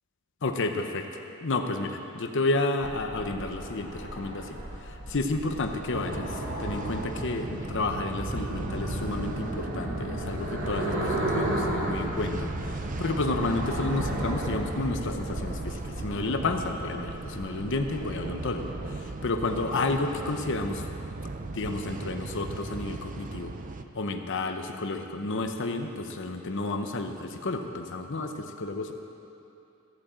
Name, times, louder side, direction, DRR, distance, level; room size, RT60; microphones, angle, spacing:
voice 1, 0.4-4.6 5.1-20.9 21.4-23.5 23.9-28.9, left 2 dB, 60° left, 5 dB, 0.8 m, -31 dB
sound 1, 2.8-18.9, right 1 dB, 65° right, 2.2 m, -35 dB
sound 2, 5.9-23.8, right 3 dB, 40° right, 0.5 m, -37 dB
15.0 x 8.7 x 7.5 m, 2.8 s
head